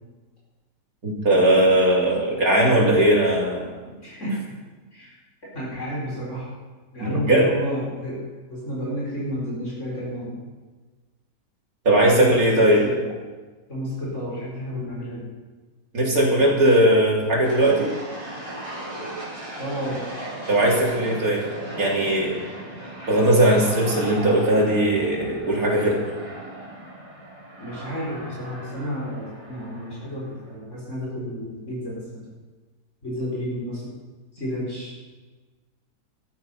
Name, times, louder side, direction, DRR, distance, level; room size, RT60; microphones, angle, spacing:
voice 1, 1.0-3.6 7.0-7.5 11.9-12.8 15.9-17.9 20.5-21.4 21.8-22.4 23.1-26.0, right 1 dB, 65° right, -3 dB, 3.7 m, -19 dB
voice 2, 3.8-4.6 4.9-5.2 5.5-6.5 6.9-10.4 12.0-13.1 13.7-15.3 19.6-20.0 27.6-32.3 33.0-33.9 34.3-35.0, equal, 50° left, -6 dB, 5.2 m, -31 dB
sound 1, 17.4-30.5, right 1 dB, 20° right, 4.1 m, -37 dB
14.0 x 13.0 x 5.7 m, 1.3 s
omnidirectional pair, 1.7 m